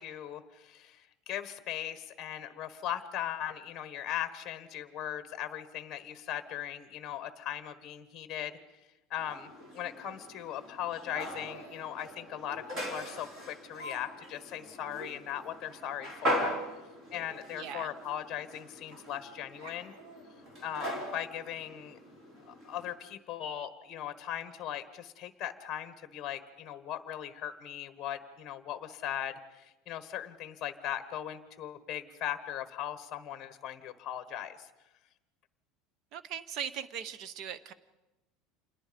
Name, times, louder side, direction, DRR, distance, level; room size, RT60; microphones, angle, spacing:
voice 1, 0.0-8.6 9.1-16.5 17.1-19.9 20.6-22.0 22.4-34.7, left 10 dB, 25° left, 11 dB, 1.3 m, -39 dB
sound 1, 9.2-22.9, equal, 25° right, 3.8 m, -40 dB
Laughter, 11.5-11.9 12.7-12.8 13.7-14.0 14.3-14.4 14.9-15.0 15.4-15.5 17.5-17.6 17.8-17.9 18.9-19.1 19.5-21.1, equal, 80° right, 4.6 m, -49 dB
voice 2, 17.5-17.9 36.1-37.7, right 8 dB, 40° right, 15 dB, 0.9 m, -39 dB
27.5 x 21.0 x 5.2 m, 1.0 s
cardioid pair, 175°, 0 cm